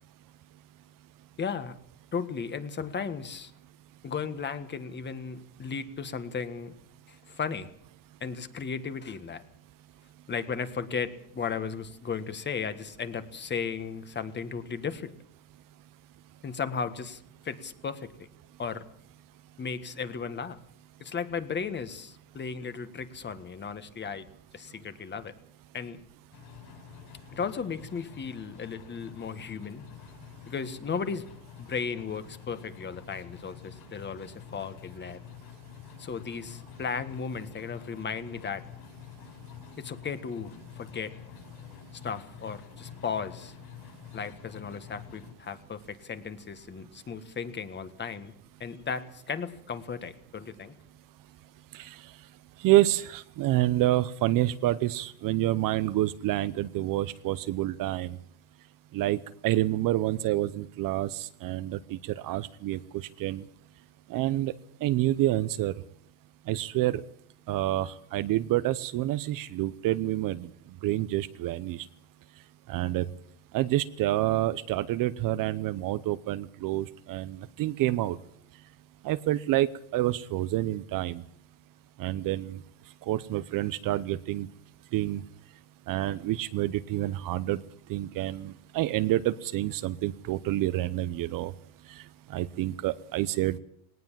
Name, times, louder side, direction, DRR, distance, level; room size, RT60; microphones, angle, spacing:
voice 1, 1.4-1.7 2.1-3.5 4.0-6.7 7.1-7.7 8.2-9.4 10.3-15.1 16.4-18.3 18.6-18.8 19.6-20.6 21.0-24.3 24.5-25.3 25.7-26.0 27.3-29.8 30.5-31.3 31.6-35.2 36.0-38.6 39.8-41.1 42.0-43.5 44.1-48.3 48.6-50.7, left 6 dB, 25° left, 11 dB, 1.6 m, -35 dB
sound 1, 26.3-45.3, left 9 dB, 55° left, 7.4 m, -48 dB
voice 2, 52.6-58.2 58.9-63.4 64.1-64.5 64.8-65.7 66.5-67.0 67.5-70.5 70.8-71.9 72.7-73.1 73.5-78.2 79.0-81.2 82.0-82.6 83.1-84.5 84.9-85.2 85.9-87.6 87.9-91.5 91.9-92.0 92.3-93.6, right 15 dB, 50° right, 15 dB, 0.8 m, -28 dB
19.0 x 19.0 x 7.5 m, 0.68 s
cardioid pair, 135°, 44 cm